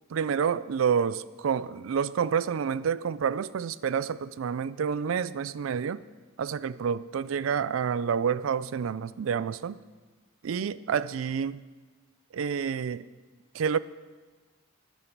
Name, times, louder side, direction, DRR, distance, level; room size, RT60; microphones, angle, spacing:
voice 1, 0.1-6.0 6.4-9.8 10.4-11.6 12.3-13.1 13.5-13.8, right 7 dB, 90° right, 18 dB, 0.4 m, -28 dB
12.5 x 10.5 x 4.6 m, 1.3 s
head